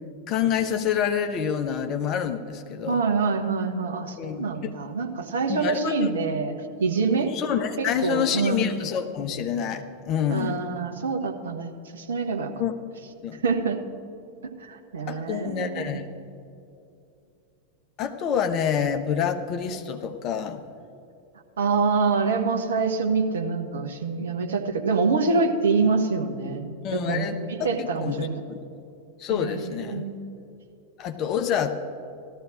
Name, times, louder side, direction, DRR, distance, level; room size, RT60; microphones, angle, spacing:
voice 1, 0.3-3.0 4.2-4.7 5.5-6.1 7.3-10.6 12.6-12.7 13.2-13.4 15.1-16.0 18.0-20.6 26.8-28.6 29.2-30.0 31.0-31.7, left 8 dB, 35° left, 7 dB, 0.9 m, -27 dB
voice 2, 2.9-7.3 7.8-8.7 10.3-12.5 13.4-13.8 14.6-16.0 21.6-28.4 29.3-30.2, right 4 dB, 65° right, 4 dB, 1.0 m, -26 dB
17.5 x 13.0 x 2.5 m, 2.7 s
figure-of-eight pair, 90°, 0 cm